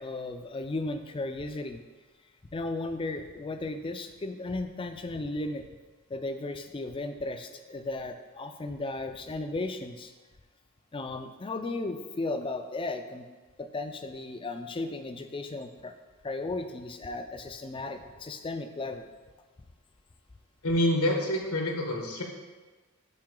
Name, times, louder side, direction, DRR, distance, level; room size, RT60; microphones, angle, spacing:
voice 1, 0.0-1.8 2.5-5.6 6.1-10.1 10.9-13.3 13.6-15.9 16.2-19.1, left 2 dB, 25° left, 7 dB, 0.4 m, -35 dB
voice 2, 20.6-22.2, left 1 dB, 80° left, 1 dB, 1.2 m, -27 dB
7.6 x 4.8 x 3.7 m, 1.3 s
head